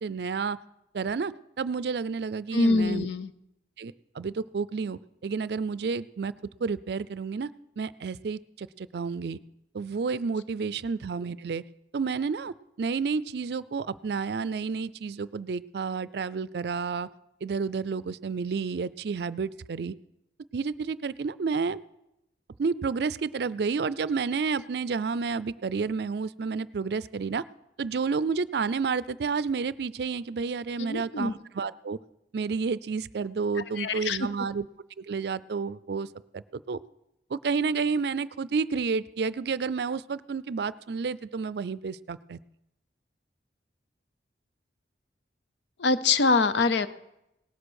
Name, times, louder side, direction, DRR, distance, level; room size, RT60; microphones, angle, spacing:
voice 1, 0.0-0.6 0.9-3.1 3.8-6.3 6.6-7.5 7.8-9.4 9.7-11.6 11.9-17.1 17.4-19.9 20.5-21.8 22.6-27.4 27.8-32.0 32.3-34.7 35.0-36.1 36.3-36.8 37.3-42.4, right 5 dB, 65° right, 18 dB, 0.4 m, -30 dB
voice 2, 2.5-3.3 30.8-31.3 33.8-34.3 45.8-46.9, left 3 dB, 75° left, 13 dB, 0.7 m, -24 dB
18.0 x 7.7 x 6.4 m, 0.87 s
head